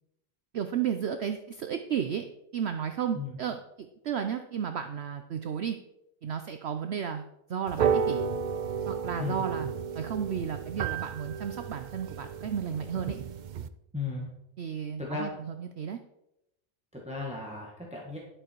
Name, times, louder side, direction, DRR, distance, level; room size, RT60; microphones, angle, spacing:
voice 1, 0.5-2.2 2.5-5.8 6.2-7.2 7.5-8.3 8.9-9.7 9.9-13.2 14.6-16.0, right 8 dB, 60° right, 8 dB, 0.8 m, -33 dB
sound 1, 7.7-13.7, right 7 dB, 75° right, 0.4 m, -32 dB
voice 2, 13.9-14.3 15.0-15.4 16.9-18.2, left 3 dB, 5° right, -3 dB, 1.7 m, -35 dB
11.0 x 7.9 x 4.6 m, 0.85 s
omnidirectional pair, 1.4 m